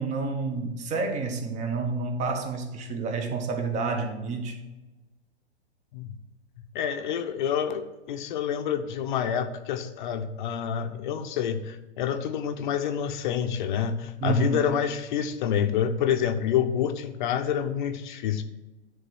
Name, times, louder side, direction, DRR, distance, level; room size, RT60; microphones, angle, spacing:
voice 1, 0.0-4.6 14.2-14.7, right 4 dB, 20° right, 1.0 m, -29 dB
voice 2, 6.7-18.4, left 8 dB, 45° left, 0.8 m, -28 dB
10.5 x 3.6 x 6.2 m
hypercardioid pair, 115°, 34 cm